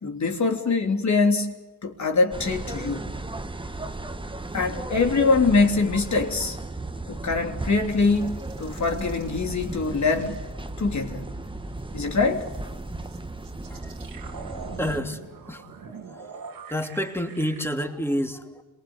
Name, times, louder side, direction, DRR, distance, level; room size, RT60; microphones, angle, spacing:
voice 1, 0.0-1.6 1.8-3.2 4.5-6.6 7.1-10.4 10.8-11.4 11.9-12.5, left 3 dB, 55° left, 3.3 m, -23 dB
sound 1, 2.3-15.0, right 2 dB, 15° right, 1.3 m, -35 dB
sound 2, 7.4-11.5 11.8-17.7, right 5 dB, 80° right, 2.6 m, -45 dB
voice 2, 14.8-16.3 16.7-18.6, equal, 5° left, 3.0 m, -30 dB
27.0 x 20.0 x 8.2 m
cardioid pair, 60°, 34 cm